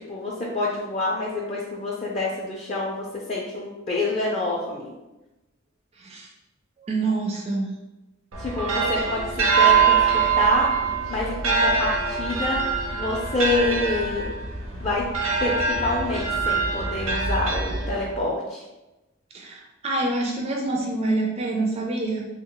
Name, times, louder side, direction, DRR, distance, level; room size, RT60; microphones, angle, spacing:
voice 1, 0.1-4.9 8.4-12.6 12.9-14.3 14.8-15.1 15.4-18.6, left 2 dB, 30° left, -4 dB, 0.4 m, -27 dB
voice 2, 6.0-6.3 6.9-7.7 9.0-9.1 19.3-22.3, right 2 dB, 30° right, -1 dB, 0.4 m, -26 dB
sound 1, 8.3-18.2, right 5 dB, 75° right, 0.6 m, -23 dB
2.9 x 2.1 x 3.7 m, 1.0 s
head